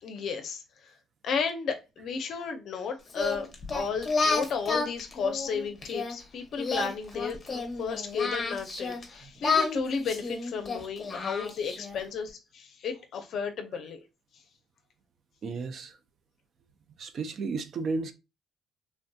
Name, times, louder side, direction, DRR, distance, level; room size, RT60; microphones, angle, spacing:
voice 1, 0.0-0.9 1.2-3.5 3.7-14.0, left 6 dB, 60° left, 0.5 m, -33 dB
Singing, 3.1-6.1 6.6-9.0 9.4-12.0, left 3 dB, 25° left, 0.8 m, -30 dB
voice 2, 15.4-16.0 17.0-18.1, right 4 dB, 45° right, 0.4 m, -33 dB
3.3 x 2.6 x 2.2 m
cardioid pair, 145°, 0 cm